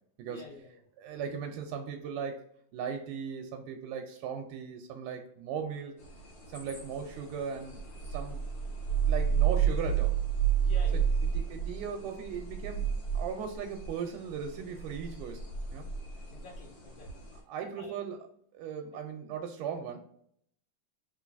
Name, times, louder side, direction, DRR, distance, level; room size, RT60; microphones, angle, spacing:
voice 1, 0.2-0.8 1.1-1.2 6.6-6.8 9.0-9.1 10.6-11.1 16.3-17.2 17.6-17.9, left 3 dB, 75° left, -1 dB, 1.3 m, -49 dB
voice 2, 1.0-2.4 2.7-5.9 6.5-8.4 9.1-10.2 10.9-11.0 11.3-15.4 15.7-15.9 17.5-18.3 18.5-20.0, right 7 dB, 80° right, 3 dB, 2.1 m, -38 dB
sound 1, 6.0-17.4, right 8 dB, 55° left, 1.6 m, -32 dB
4.3 x 3.8 x 2.5 m, 0.67 s
omnidirectional pair, 3.9 m